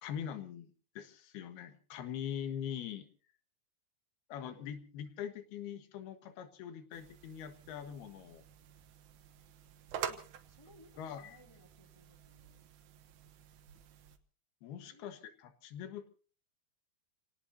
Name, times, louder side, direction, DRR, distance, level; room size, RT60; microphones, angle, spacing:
voice 1, 0.0-0.7 1.0-3.1 4.3-8.4 11.0-11.4 14.6-16.1, left 9 dB, 75° left, 9 dB, 3.4 m, -43 dB
sound 1, 6.9-14.2, right 9 dB, 65° right, 2.1 m, -48 dB
voice 2, 10.1-12.7 14.8-15.2, left 1 dB, 10° left, 2 dB, 1.9 m, -62 dB
29.5 x 18.0 x 2.7 m, 0.37 s
omnidirectional pair, 4.6 m